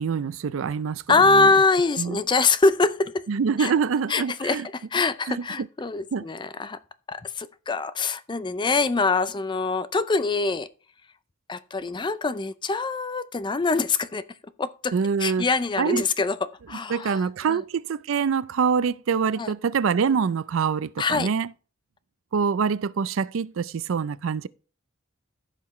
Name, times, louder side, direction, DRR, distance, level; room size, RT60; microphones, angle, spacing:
voice 1, 0.0-1.5 2.0-2.2 3.3-4.7 5.0-5.7 6.1-6.2 14.9-15.4 15.8-16.0 16.9-21.5 22.3-24.5, right 6 dB, 70° right, 0.4 m, -25 dB
voice 2, 1.1-3.2 3.6-3.7 4.1-6.8 7.1-10.7 11.5-14.2 14.6-14.9 15.2-17.2 17.5-17.6 19.4-19.5 21.0-21.3, left 3 dB, 20° left, 0.4 m, -24 dB
15.0 x 5.8 x 3.1 m
head